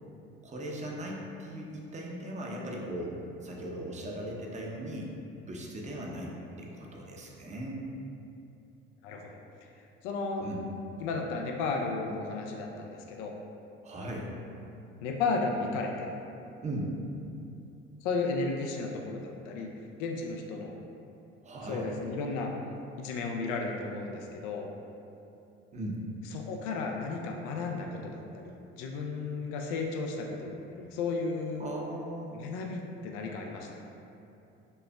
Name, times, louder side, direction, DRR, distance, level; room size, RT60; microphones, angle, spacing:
voice 1, 0.4-5.1 5.5-6.3 6.6-7.8 10.4-10.7 13.8-14.3 16.6-16.9 21.4-21.9 25.7-26.0 31.6-32.4, right 1 dB, 25° right, -2 dB, 0.6 m, -38 dB
voice 2, 9.0-9.4 10.0-10.5 11.0-13.3 15.0-16.1 18.0-19.7 20.0-20.8 21.7-22.5 23.0-24.7 26.3-31.6 32.3-33.7, left 3 dB, 75° left, 1 dB, 0.4 m, -34 dB
5.2 x 2.0 x 2.2 m, 2.7 s
hypercardioid pair, 70°, 30 cm